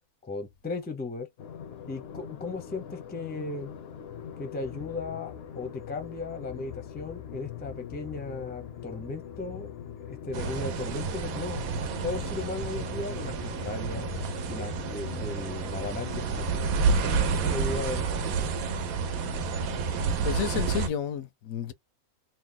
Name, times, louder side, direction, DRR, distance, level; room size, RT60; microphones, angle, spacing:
voice 1, 0.2-1.3 1.9-3.7 4.4-9.7 10.0-11.6 12.0-14.1 14.5-16.6 17.0-18.5, left 3 dB, 10° left, 0.4 m, -36 dB
sound 1, 1.4-20.9, left 10 dB, 60° left, 0.7 m, -41 dB
sound 2, 10.3-20.9, right 5 dB, 85° right, 1.1 m, -30 dB
voice 2, 20.2-21.7, left 9 dB, 80° left, 1.0 m, -31 dB
3.1 x 2.1 x 3.7 m
omnidirectional pair, 1.5 m